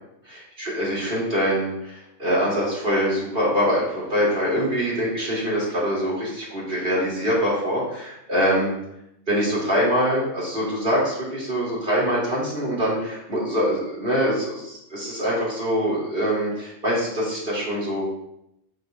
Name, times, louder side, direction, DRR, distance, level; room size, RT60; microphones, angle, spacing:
voice 1, 0.6-8.7 9.3-18.1, equal, 45° right, -6 dB, 2.5 m, -24 dB
9.2 x 4.5 x 2.3 m, 0.82 s
omnidirectional pair, 1.3 m